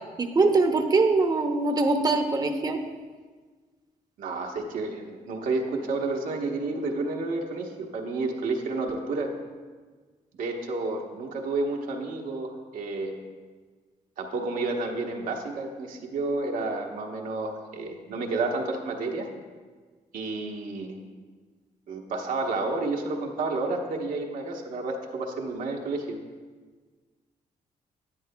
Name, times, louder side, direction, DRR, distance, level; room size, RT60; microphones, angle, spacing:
voice 1, 0.2-2.8, right 3 dB, 25° right, 5 dB, 0.7 m, -22 dB
voice 2, 4.2-9.3 10.4-13.2 14.2-19.3 20.1-21.0 21.9-26.2, right 3 dB, 75° right, 1 dB, 1.0 m, -30 dB
10.0 x 9.1 x 2.2 m, 1.4 s
cardioid pair, 80°, 14 cm